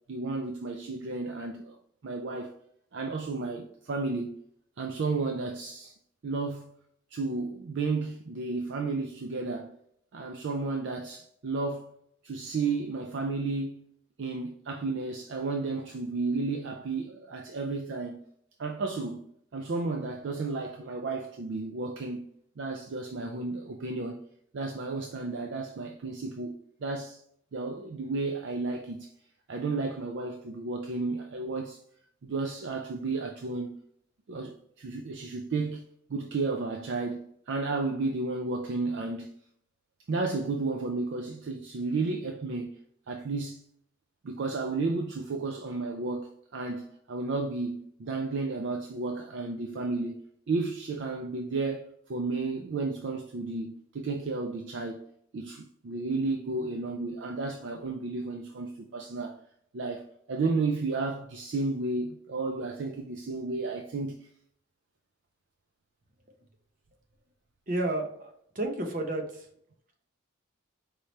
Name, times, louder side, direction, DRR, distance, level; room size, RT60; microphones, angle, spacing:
voice 1, 0.1-1.8 2.0-2.5 2.9-4.4 4.8-5.9 6.2-6.7 7.1-9.8 10.1-11.9 12.2-13.9 14.2-18.2 18.6-22.3 22.6-24.2 24.5-27.2 27.5-29.1 29.5-31.8 32.2-33.8 34.3-35.8 36.1-39.3 40.1-42.8 43.1-43.6 44.2-55.0 55.3-59.4 59.7-64.3, right 3 dB, 60° right, 0.4 m, -32 dB
voice 2, 67.7-69.5, right 1 dB, 40° right, 0.8 m, -31 dB
4.6 x 3.2 x 2.7 m
head